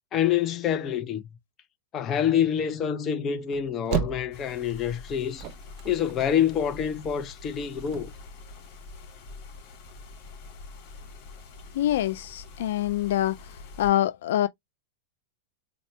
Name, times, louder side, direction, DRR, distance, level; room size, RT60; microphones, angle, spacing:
voice 1, 0.1-1.2 1.9-5.5 5.8-8.1, left 9 dB, 30° left, 0.8 m, -26 dB
sound 1, 3.4-4.8 5.1-6.7 6.9-7.0 7.2-7.3 7.8-8.3, right 9 dB, 45° right, 0.7 m, -33 dB
sound 2, 4.3-13.9, left 3 dB, 50° left, 3.0 m, -45 dB
voice 2, 11.7-13.4 13.8-14.5, left 13 dB, 70° left, 0.3 m, -25 dB
4.1 x 2.9 x 3.2 m
hypercardioid pair, 130°, 0 cm